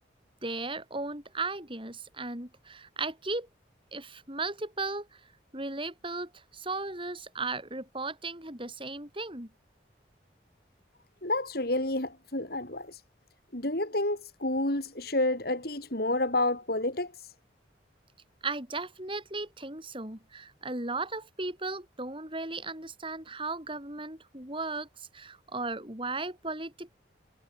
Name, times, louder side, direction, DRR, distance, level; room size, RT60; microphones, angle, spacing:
voice 1, 0.4-3.5 3.9-5.2 5.5-9.5 18.4-26.9, right 3 dB, 30° right, 7.1 m, -36 dB
voice 2, 11.2-13.0 13.5-17.3, left 2 dB, 55° left, 4.5 m, -29 dB
head